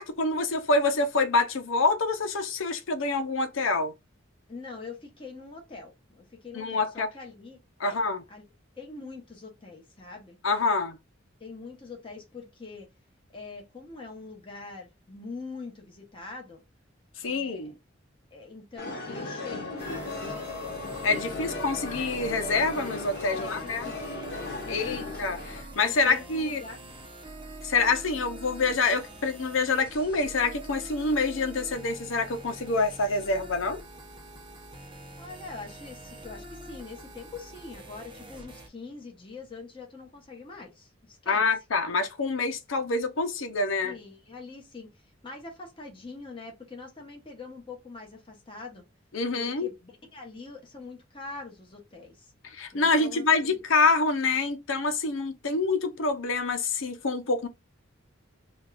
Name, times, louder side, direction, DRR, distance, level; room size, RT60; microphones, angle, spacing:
voice 1, 0.0-3.9 6.5-7.1 7.8-8.2 10.4-11.0 17.2-17.7 21.0-23.9 24.7-26.6 27.6-33.8 41.3-43.9 49.1-49.7 52.4-57.5, left 3 dB, 80° left, 0.7 m, -26 dB
voice 2, 4.5-8.0 8.3-8.4 8.8-10.4 11.4-12.9 13.3-16.6 17.2-17.7 18.3-19.7 20.1-20.5 21.2-21.7 23.3-24.2 24.7-25.2 26.0-26.8 35.2-41.4 43.8-44.9 45.2-48.8 49.4-52.3 52.7-53.6, left 3 dB, 25° left, 1.1 m, -44 dB
sound 1, 18.8-25.6, left 2 dB, 55° left, 1.5 m, -36 dB
sound 2, 19.8-38.7, right 1 dB, 25° right, 0.7 m, -45 dB
5.1 x 2.4 x 2.5 m
head